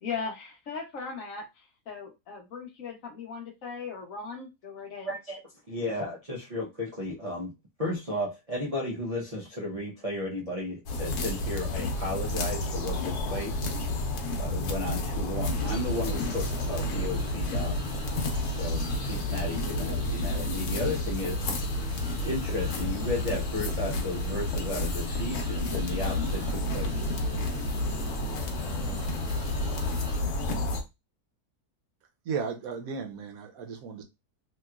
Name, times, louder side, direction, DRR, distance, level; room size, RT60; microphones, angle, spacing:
voice 1, 0.0-5.1, left 5 dB, 65° left, 1.0 m, -38 dB
voice 2, 5.0-5.4 5.7-7.5 7.8-17.8 18.2-21.8 22.2-27.0, left 1 dB, 40° right, 0.5 m, -34 dB
sound 1, 10.9-30.8, left 1 dB, 85° left, 1.3 m, -30 dB
sound 2, 15.4-30.2, right 1 dB, 5° right, 0.9 m, -43 dB
voice 3, 32.3-34.0, right 5 dB, 70° right, 1.1 m, -35 dB
3.0 x 2.9 x 2.3 m
omnidirectional pair, 1.6 m